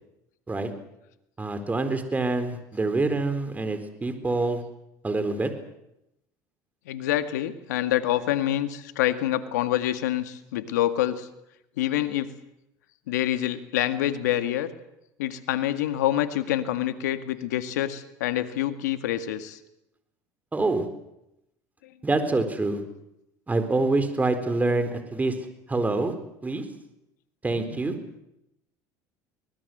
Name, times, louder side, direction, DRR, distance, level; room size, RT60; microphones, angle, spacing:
voice 1, 1.4-4.6 5.0-5.5 20.5-20.8 22.0-22.8 23.5-25.3 25.7-26.1 26.4-26.6 27.4-27.9, right 3 dB, 15° right, 9 dB, 4.3 m, -26 dB
voice 2, 6.9-11.3 11.8-12.3 13.1-14.7 15.2-19.6 27.7-27.8, left 13 dB, 90° left, 10 dB, 1.9 m, -26 dB
24.0 x 20.0 x 8.0 m, 0.85 s
supercardioid pair, 90°, 9 cm